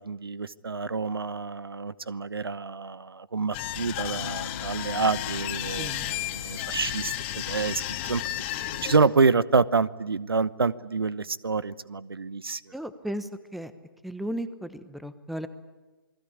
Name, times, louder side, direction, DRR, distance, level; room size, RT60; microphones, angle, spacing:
voice 1, 0.0-8.2 8.5-12.6, right 4 dB, 80° right, 19 dB, 1.0 m, -27 dB
sound 1, 3.5-9.0, left 13 dB, 30° left, 2.1 m, -33 dB
Electric guitar / Strum, 4.1-12.4, left 4 dB, 65° left, 2.2 m, -47 dB
voice 2, 5.8-6.2 12.7-13.7 14.0-15.5, equal, ahead, 13 dB, 1.0 m, -35 dB
28.5 x 20.5 x 8.6 m, 1.2 s
figure-of-eight pair, 140°, 12 cm